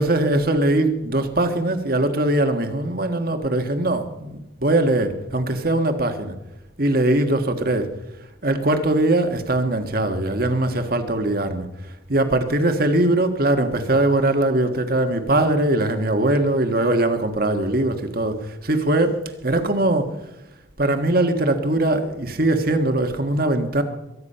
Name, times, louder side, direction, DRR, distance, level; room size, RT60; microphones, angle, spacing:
voice 1, 0.0-6.4 6.8-7.9 8.4-20.1 20.8-23.8, right 1 dB, 50° right, 6 dB, 1.5 m, -21 dB
22.5 x 9.7 x 5.6 m, 0.91 s
head